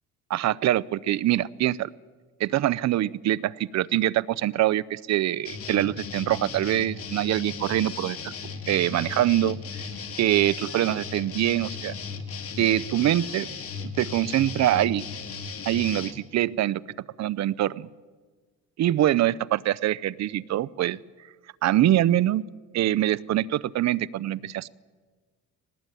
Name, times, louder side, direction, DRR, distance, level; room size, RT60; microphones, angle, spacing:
voice 1, 0.3-1.9 2.4-8.3 8.7-9.6 10.2-11.9 12.6-13.5 14.0-15.0 15.7-16.8 17.2-17.9 18.8-21.0 21.6-22.4 22.7-24.7, right 13 dB, 55° right, 20 dB, 0.6 m, -24 dB
sound 1, 5.4-16.1, left 5 dB, 45° left, 2.2 m, -36 dB
21.0 x 19.0 x 9.1 m, 1.4 s
cardioid pair, 120°, 31 cm